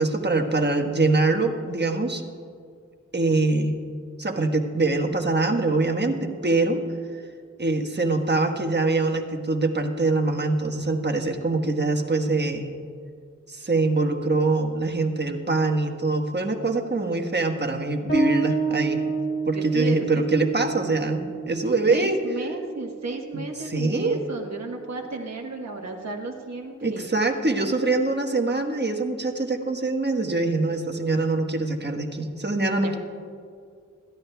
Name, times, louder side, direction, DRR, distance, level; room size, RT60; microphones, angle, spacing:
voice 1, 0.0-2.2 3.1-3.7 4.2-6.8 7.6-12.7 13.5-19.0 19.5-22.2 23.3-24.2 26.8-32.9, right 3 dB, 35° right, 3 dB, 1.4 m, -24 dB
Bass guitar, 18.1-25.2, right 4 dB, 40° left, 3.5 m, -30 dB
voice 2, 19.5-20.2 21.9-27.1 32.8-32.9, right 3 dB, 60° right, 0 dB, 1.3 m, -33 dB
21.0 x 14.0 x 2.3 m, 2.2 s
wide cardioid pair, 50°, 31 cm